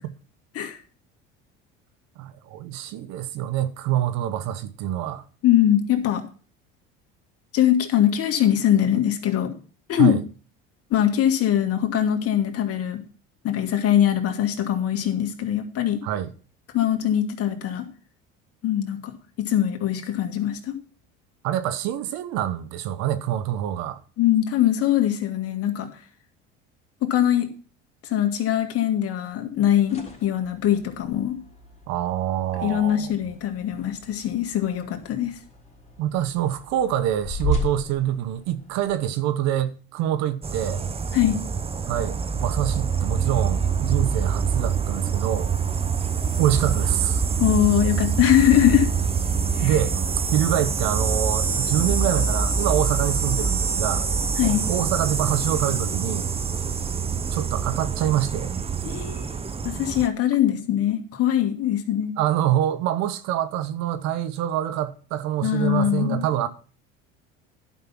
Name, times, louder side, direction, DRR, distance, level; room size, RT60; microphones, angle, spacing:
voice 1, 2.2-5.2 10.0-10.2 16.0-16.3 21.4-24.0 31.9-33.1 36.0-40.8 41.9-45.5 46.4-47.2 49.6-50.0 50.3-54.1 54.4-56.3 57.3-58.5 62.2-66.5, right 11 dB, 65° right, 1.0 m, -25 dB
voice 2, 5.4-6.2 7.5-9.5 9.9-10.2 10.9-13.0 13.4-16.0 16.7-17.9 18.6-20.7 24.2-25.9 27.0-27.5 28.1-31.4 32.6-35.4 41.1-41.4 47.4-48.9 49.6-49.8 54.4-54.6 58.8-59.3 59.6-62.2 65.4-66.3, left 11 dB, 50° left, 2.1 m, -22 dB
sound 1, 29.6-38.9, left 1 dB, 20° left, 3.3 m, -35 dB
sound 2, 40.4-60.1, right 6 dB, 20° right, 0.9 m, -25 dB
11.0 x 5.7 x 5.9 m
supercardioid pair, 85°, 29 cm